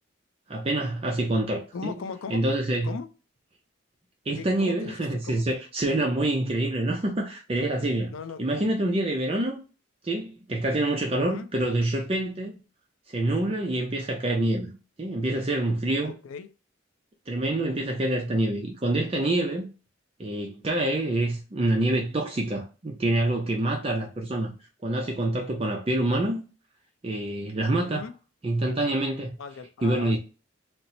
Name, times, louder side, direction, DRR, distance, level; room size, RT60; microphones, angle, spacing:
voice 1, 0.5-1.9 2.3-2.9 4.3-8.1 8.4-9.6 10.0-12.6 13.1-14.7 15.0-16.1 17.3-19.7 20.2-24.5 24.8-26.4 27.0-28.0 28.4-29.3 29.8-30.2, right 1 dB, 30° right, 0.4 m, -26 dB
voice 2, 1.7-2.4 2.8-3.1 4.4-5.4 8.1-8.6 11.2-11.5 16.0-16.5 27.8-28.1 29.4-30.2, left 5 dB, 80° left, 0.4 m, -38 dB
4.2 x 2.0 x 2.6 m
head